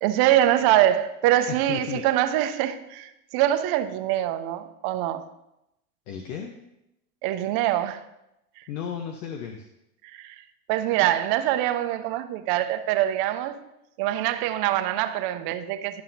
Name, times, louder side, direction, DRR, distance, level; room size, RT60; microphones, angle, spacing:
voice 1, 0.0-5.3 7.2-8.0 8.6-8.7 10.1-10.4 10.7-13.6 14.0-16.0, right 13 dB, 50° right, 0.8 m, -24 dB
voice 2, 1.5-2.1 6.1-6.5 8.7-9.7, left 8 dB, 70° left, 1.0 m, -34 dB
12.5 x 5.6 x 2.8 m
hypercardioid pair, 105°, 46 cm